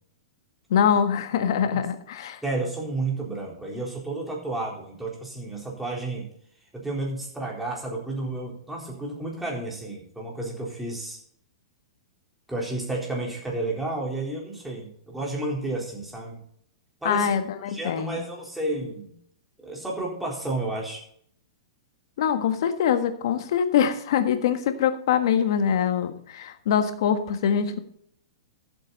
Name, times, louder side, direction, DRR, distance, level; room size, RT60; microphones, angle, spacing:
voice 1, 0.7-2.4 17.0-18.2 22.2-27.8, left 8 dB, 65° left, 9 dB, 1.5 m, -24 dB
voice 2, 2.4-6.3 6.7-11.2 12.5-16.4 17.0-17.3 17.6-19.1 19.6-21.0, right 2 dB, 5° right, -2 dB, 3.9 m, -31 dB
13.5 x 8.1 x 4.1 m, 0.65 s
hypercardioid pair, 130°, 3 cm